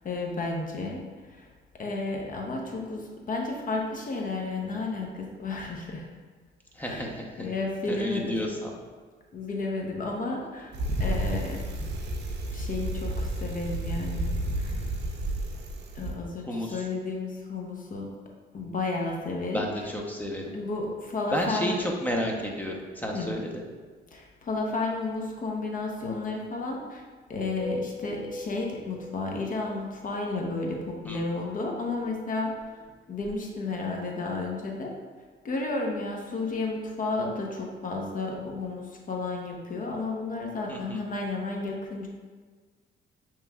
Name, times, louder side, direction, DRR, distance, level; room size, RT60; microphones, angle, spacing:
voice 1, 0.0-1.0 1.3-1.5 1.8-6.1 6.8-7.1 7.4-8.4 9.3-10.7 11.0-11.7 12.5-14.3 14.5-14.8 15.9-18.1 18.5-19.7 20.5-21.8 23.1-23.3 24.1-27.0 27.3-32.5 33.1-34.9 35.4-42.1, left 3 dB, 45° left, 0 dB, 0.7 m, -32 dB
voice 2, 6.8-7.5 7.9-8.7 16.5-16.8 19.5-20.5 21.3-23.6 31.1-31.2 40.7-41.0, equal, 10° left, 0 dB, 0.7 m, -31 dB
Bicycle, 10.7-16.2, right 1 dB, 60° right, 0.6 m, -31 dB
sound 1, 27.6-29.8 32.0-33.5, left 2 dB, 85° left, 1.1 m, -41 dB
6.7 x 3.1 x 2.3 m, 1.5 s
cardioid pair, 90°, 20 cm